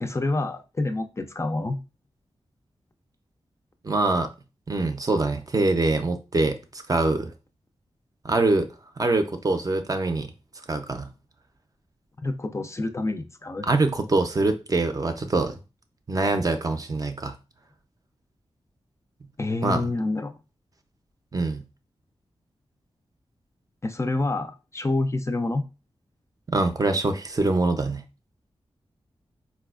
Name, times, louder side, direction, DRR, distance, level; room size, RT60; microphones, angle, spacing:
voice 1, 0.0-1.8 12.2-13.7 19.4-20.3 23.8-25.7, left 2 dB, 25° left, 0.4 m, -27 dB
voice 2, 3.8-4.3 4.7-6.6 6.9-7.3 8.2-8.7 9.0-10.3 10.7-11.1 13.6-15.6 16.1-17.3 19.6-19.9 21.3-21.6 26.5-28.0, right 2 dB, 35° right, 0.5 m, -24 dB
4.1 x 2.3 x 2.3 m
wide cardioid pair, 70°, 10 cm